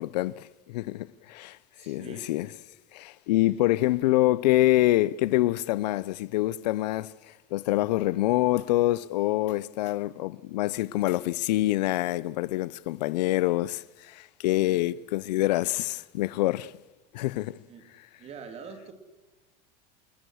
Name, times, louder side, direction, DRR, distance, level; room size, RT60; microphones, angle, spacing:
voice 1, 0.0-1.6 1.9-2.5 2.9-7.1 7.5-16.7 17.1-17.6, left 17 dB, 90° left, 0.7 m, -26 dB
voice 2, 1.7-2.3 3.4-3.5 14.6-14.8 17.7-17.9 18.2-18.9, right 5 dB, 30° right, 2.8 m, -44 dB
27.5 x 19.5 x 6.4 m
supercardioid pair, 150°, 20 cm